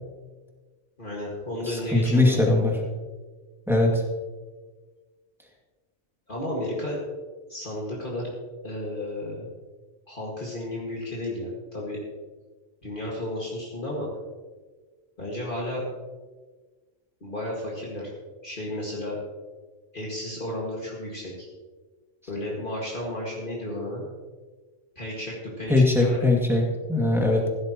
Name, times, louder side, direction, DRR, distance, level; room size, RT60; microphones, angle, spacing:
voice 1, 1.0-2.4 6.3-7.0 7.5-8.3 8.6-9.5 10.1-12.0 12.8-14.1 15.2-15.8 17.2-18.1 18.4-19.2 19.9-21.5 22.3-24.0 25.0-26.2, left 1 dB, 45° left, -4 dB, 2.2 m, -33 dB
voice 2, 1.7-2.8 3.7-4.0 25.7-27.5, left 2 dB, ahead, -2 dB, 2.1 m, -21 dB
15.0 x 12.5 x 3.0 m, 1.3 s
omnidirectional pair, 1.2 m